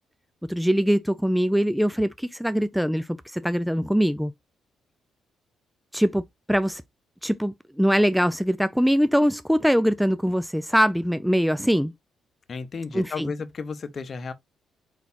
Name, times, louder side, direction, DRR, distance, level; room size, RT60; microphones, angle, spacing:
voice 1, 0.5-4.3 5.9-6.8 7.2-11.9 12.9-13.3, equal, ahead, 0.3 m, -22 dB
voice 2, 12.5-14.3, left 5 dB, 45° left, 0.8 m, -33 dB
4.6 x 4.1 x 2.6 m
cardioid pair, 90°, 0 cm